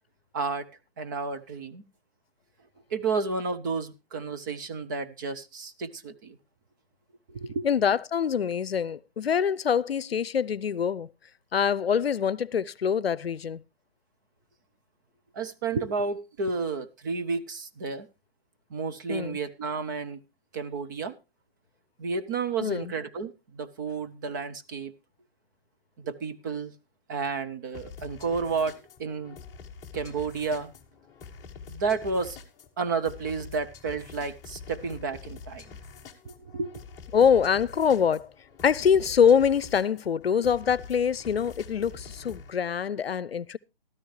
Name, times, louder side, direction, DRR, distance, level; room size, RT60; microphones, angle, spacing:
voice 1, 0.3-0.7 1.0-1.8 2.9-6.4 7.3-7.7 15.3-18.1 18.7-20.2 20.5-21.1 22.0-24.9 26.0-26.7 27.1-28.7 29.0-29.4 29.9-30.7 31.7-32.4 32.8-35.7 36.3-36.8, right 4 dB, 20° right, 0.5 m, -31 dB
voice 2, 7.6-11.1 11.5-13.6 19.1-19.4 22.6-22.9 37.1-38.3 38.6-43.6, left 7 dB, 80° left, 0.6 m, -24 dB
sound 1, 27.7-42.5, left 5 dB, 10° left, 1.0 m, -46 dB
13.5 x 13.0 x 3.2 m
figure-of-eight pair, 145°, 30 cm